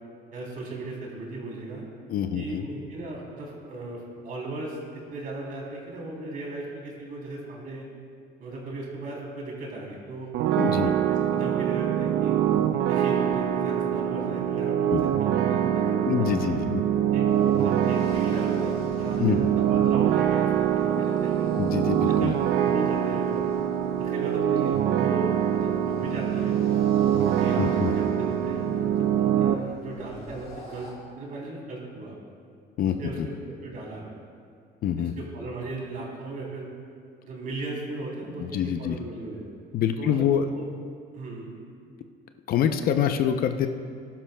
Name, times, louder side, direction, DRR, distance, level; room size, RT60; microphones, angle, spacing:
voice 1, 0.3-1.8 2.3-7.8 8.4-10.3 10.6-10.9 11.3-12.4 12.9-16.6 17.1-21.5 22.2-23.5 24.0-26.6 27.3-30.9 31.1-32.2 32.8-33.3 33.6-34.1 35.0-36.7 37.2-39.4 40.0-40.7 41.1-41.5, right 2 dB, 50° right, -2 dB, 3.2 m, -37 dB
voice 2, 2.1-2.7 10.6-10.9 14.9-15.0 16.1-16.8 19.2-19.5 21.6-22.3 27.6-28.0 32.8-33.3 34.8-35.1 38.4-39.0 39.7-40.5 42.5-43.7, left 9 dB, 55° left, 8 dB, 0.6 m, -26 dB
sound 1, 10.3-29.5, right 10 dB, 70° right, 0.6 m, -24 dB
sound 2, 17.3-30.9, left 2 dB, 35° left, 3.2 m, -45 dB
19.5 x 11.5 x 2.2 m, 2.2 s
cardioid pair, 140°, 18 cm